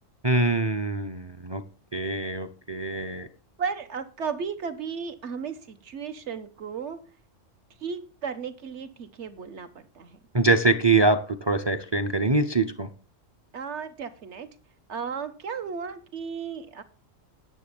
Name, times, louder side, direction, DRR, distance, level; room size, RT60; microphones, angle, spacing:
voice 1, 0.2-1.6 1.9-3.3 10.3-12.9, right 2 dB, 25° right, 0.6 m, -24 dB
voice 2, 3.6-7.0 7.8-10.2 13.5-14.5 14.9-16.8, right 6 dB, 60° right, 1.5 m, -34 dB
9.9 x 7.1 x 6.9 m
omnidirectional pair, 1.3 m